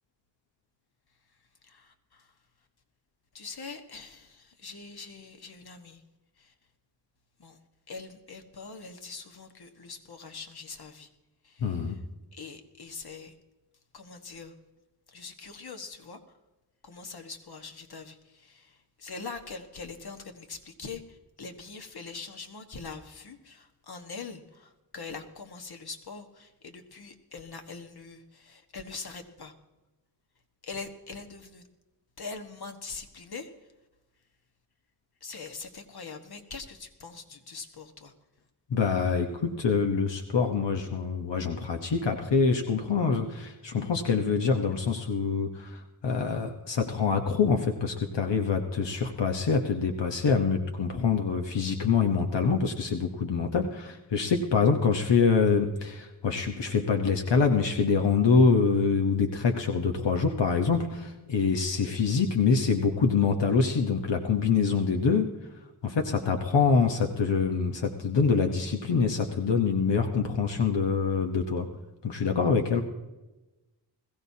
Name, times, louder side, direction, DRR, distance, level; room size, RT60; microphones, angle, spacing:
voice 1, 1.6-2.3 3.3-6.0 6.4-6.5 7.4-7.6 7.9-11.1 11.4-12.0 12.3-13.3 13.9-14.5 15.1-16.2 16.8-29.5 30.6-31.7 32.2-33.5 35.2-38.1, left 4 dB, 60° left, 6 dB, 1.5 m, -43 dB
voice 2, 11.6-12.0 38.7-65.4 65.8-71.7 72.0-72.8, left 5 dB, 90° left, 4 dB, 1.1 m, -25 dB
21.0 x 15.5 x 2.8 m, 1.1 s
wide cardioid pair, 70°, 42 cm